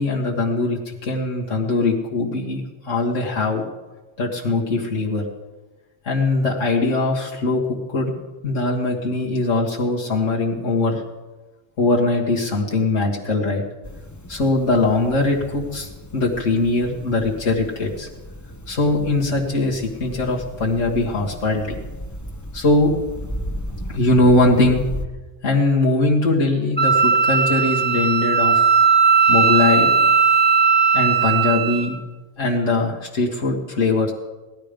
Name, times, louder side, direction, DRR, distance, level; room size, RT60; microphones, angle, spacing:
voice 1, 0.0-3.7 4.2-5.2 6.1-7.6 7.9-8.1 8.4-11.0 11.8-13.6 14.3-18.1 18.7-21.8 22.5-22.9 23.9-24.8 25.4-28.6 29.3-30.1 30.9-32.0 32.4-34.1, left 2 dB, 75° left, -3 dB, 2.0 m, -21 dB
room tone street side room city animation, 13.8-25.1, equal, 15° left, 0.7 m, -35 dB
Wind instrument woodwind instrument, 26.8-31.9, right 5 dB, 20° right, 1.5 m, -17 dB
17.5 x 12.5 x 5.2 m, 1.2 s
omnidirectional pair, 1.3 m